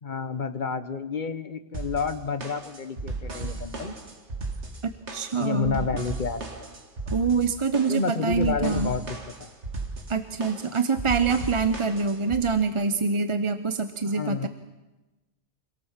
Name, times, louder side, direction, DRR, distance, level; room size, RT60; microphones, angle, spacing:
voice 1, 0.0-4.0 5.4-6.7 7.9-9.5 14.1-14.5, left 5 dB, 45° left, 11 dB, 1.2 m, -30 dB
sound 1, 1.7-12.4, right 3 dB, 70° right, 2.4 m, -36 dB
voice 2, 4.8-5.8 7.1-8.9 10.1-14.5, right 5 dB, 30° right, 10 dB, 0.7 m, -25 dB
25.5 x 18.0 x 7.4 m, 1.1 s
omnidirectional pair, 1.2 m